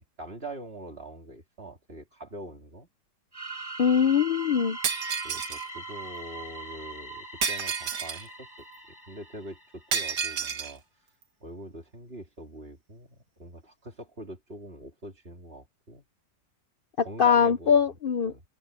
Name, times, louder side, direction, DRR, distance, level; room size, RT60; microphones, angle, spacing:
voice 1, 0.0-2.9 5.2-10.8 11.4-16.0 17.0-17.8 18.3-18.4, right 1 dB, 35° right, 3.2 m, -44 dB
sound 1, 3.3-10.0, right 2 dB, 15° right, 3.2 m, -41 dB
voice 2, 3.8-4.8 17.0-18.3, left 7 dB, 65° left, 0.5 m, -22 dB
Shatter, 4.8-5.7 7.4-8.3 9.9-10.7, right 6 dB, 90° right, 2.1 m, -30 dB
open air
omnidirectional pair, 1.7 m